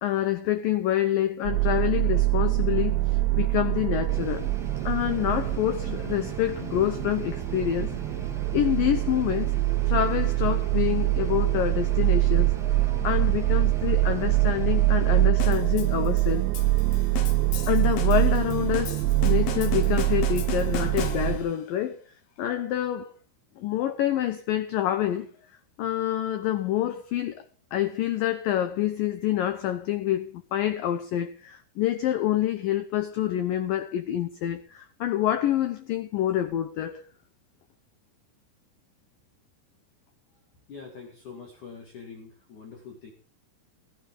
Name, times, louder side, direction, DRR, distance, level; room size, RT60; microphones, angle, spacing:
voice 1, 0.0-4.5 4.9-7.9 8.5-9.5 9.9-12.5 13.0-16.5 17.7-22.0 22.4-23.1 23.6-25.3 25.8-27.5 27.7-37.0, left 12 dB, 85° left, 2.0 m, -27 dB
sound 1, 1.5-21.4, right 17 dB, 80° right, 2.9 m, -24 dB
sound 2, 4.1-15.3, right 2 dB, ahead, 1.6 m, -40 dB
sound 3, 15.4-21.6, left 7 dB, 70° left, 2.5 m, -37 dB
voice 2, 40.7-43.1, left 5 dB, 50° left, 3.2 m, -44 dB
17.5 x 12.0 x 3.8 m
omnidirectional pair, 5.2 m